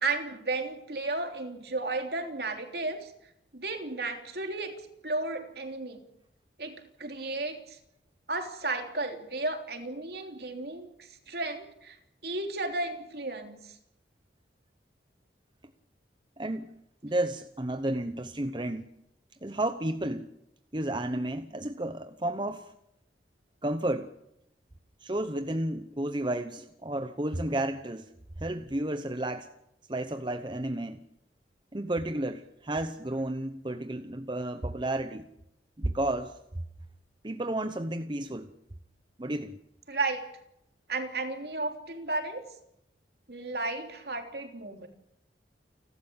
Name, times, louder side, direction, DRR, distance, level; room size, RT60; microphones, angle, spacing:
voice 1, 0.0-3.1 3.5-4.7 5.0-6.0 6.6-7.8 8.3-12.0 12.2-13.7 39.9-40.2 40.9-42.4 43.3-44.9, right 3 dB, 55° right, 5 dB, 3.3 m, -33 dB
voice 2, 16.4-16.7 17.0-18.9 19.4-20.3 20.7-22.7 23.6-24.1 25.0-28.1 28.4-29.5 29.9-31.0 31.7-35.3 35.8-36.4 37.2-38.5 39.2-39.6, right 1 dB, 25° right, 9 dB, 0.9 m, -32 dB
30.0 x 12.5 x 8.8 m, 0.81 s
head